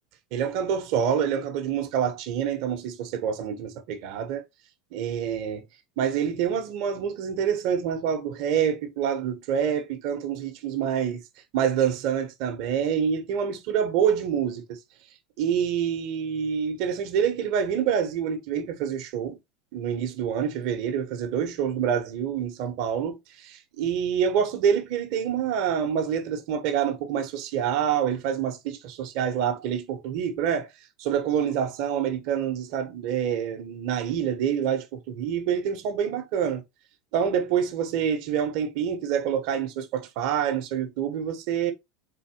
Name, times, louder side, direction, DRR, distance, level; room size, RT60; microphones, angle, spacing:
voice 1, 0.3-4.4 4.9-5.6 6.0-11.2 11.5-14.8 15.4-19.4 19.7-30.7 31.0-36.6 37.1-41.7, right 8 dB, 60° right, 1.0 m, -27 dB
4.1 x 3.9 x 2.9 m
hypercardioid pair, 80°, 0 cm